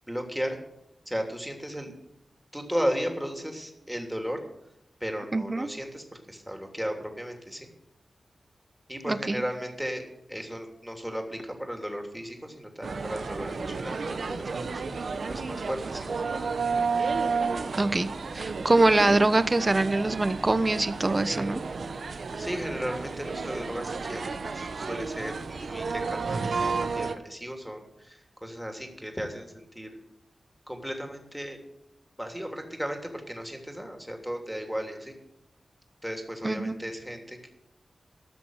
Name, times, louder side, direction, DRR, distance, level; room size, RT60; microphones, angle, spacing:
voice 1, 0.1-0.6 1.1-1.9 2.5-4.4 5.0-7.7 8.9-10.0 10.3-14.8 15.3-16.1 22.3-29.9 30.7-31.6 32.2-35.1 36.0-37.5, equal, 5° right, 3 dB, 3.1 m, -35 dB
voice 2, 5.3-5.7 9.1-9.4 17.8-18.1 18.3-21.6 36.4-36.7, right 2 dB, 35° right, 13 dB, 0.9 m, -24 dB
sound 1, 12.8-27.1, right 4 dB, 75° right, 1.0 m, -32 dB
14.0 x 6.1 x 9.8 m, 0.86 s
cardioid pair, 50°, 0 cm